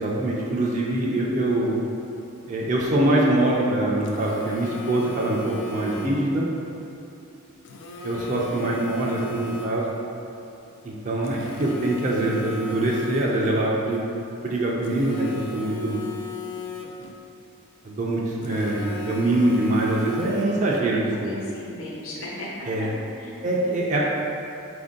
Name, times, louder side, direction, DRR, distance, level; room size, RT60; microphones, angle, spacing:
voice 1, 0.0-1.8 2.5-6.5 8.0-9.9 10.8-14.0 14.4-16.0 17.8-21.3 22.7-22.9 23.4-24.0, right 1 dB, 35° right, -4 dB, 0.3 m, -24 dB
Telephone, 4.0-6.4 7.7-10.0 11.2-13.6 14.8-17.2 18.4-20.8, left 2 dB, 90° left, 0.4 m, -36 dB
voice 2, 5.7-6.3 21.1-22.5 22.8-22.9 23.2-23.5 23.9-24.0, left 2 dB, 70° left, -5 dB, 0.9 m, -37 dB
4.2 x 2.6 x 3.6 m, 2.8 s
head